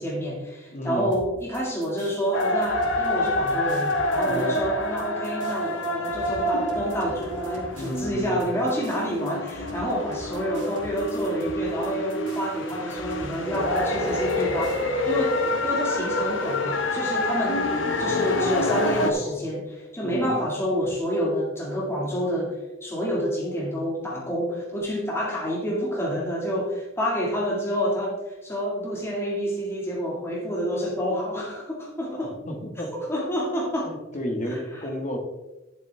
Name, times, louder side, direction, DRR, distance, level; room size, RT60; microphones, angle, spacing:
voice 1, 0.0-17.7 18.0-32.4 32.9-33.9 34.5-34.9, equal, 15° left, -4 dB, 1.7 m, -28 dB
voice 2, 0.7-1.1 4.2-4.6 7.7-8.5 20.0-20.3 32.2-32.9 33.8-35.2, equal, 40° left, 2 dB, 1.6 m, -32 dB
sound 1, 1.1-14.8, right 1 dB, 65° right, 2.6 m, -44 dB
sound 2, 2.3-19.1, left 1 dB, 70° left, 1.2 m, -28 dB
sound 3, 13.5-19.3, equal, 10° right, 2.8 m, -33 dB
11.0 x 7.3 x 3.4 m, 1.0 s
head